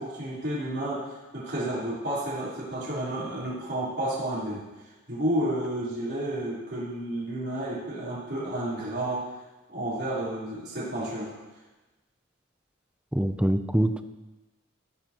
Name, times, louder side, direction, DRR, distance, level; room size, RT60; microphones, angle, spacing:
voice 1, 0.0-4.6 5.1-9.3 9.7-11.3, right 1 dB, 55° right, -9 dB, 3.8 m, -31 dB
voice 2, 13.1-14.0, right 1 dB, 5° right, 9 dB, 0.4 m, -24 dB
15.5 x 10.5 x 3.0 m, 1.1 s
head